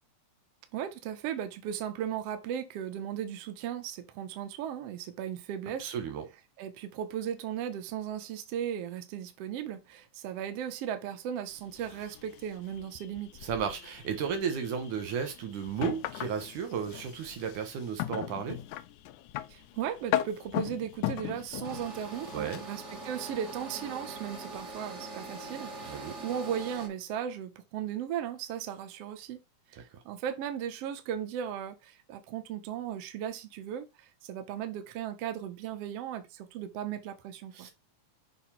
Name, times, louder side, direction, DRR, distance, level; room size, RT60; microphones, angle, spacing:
voice 1, 0.7-5.9 6.6-13.3 19.5-29.4 29.7-37.7, right 9 dB, 65° right, 1.8 m, -36 dB
voice 2, 5.8-6.3 13.4-18.6 22.3-22.6 25.8-26.2 37.5-37.7, right 7 dB, 85° right, 2.8 m, -34 dB
sound 1, 11.5-22.7, left 13 dB, 85° left, 2.0 m, -38 dB
sound 2, 21.6-26.9, right 2 dB, 35° right, 1.4 m, -42 dB
6.9 x 2.9 x 5.8 m
omnidirectional pair, 3.4 m